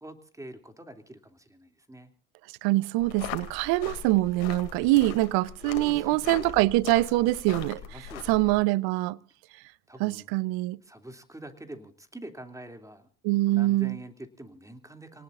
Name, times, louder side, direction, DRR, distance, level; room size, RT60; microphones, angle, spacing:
voice 1, 0.0-2.1 5.6-6.5 7.9-8.6 9.9-10.4 10.8-13.1 13.5-15.2, right 1 dB, 10° right, 2.7 m, -45 dB
voice 2, 2.6-9.2 10.0-10.8 13.2-14.0, right 18 dB, 60° right, 0.8 m, -24 dB
sound 1, 3.0-8.6, left 11 dB, 70° left, 2.6 m, -41 dB
29.0 x 18.5 x 2.5 m
hypercardioid pair, 75°, 41 cm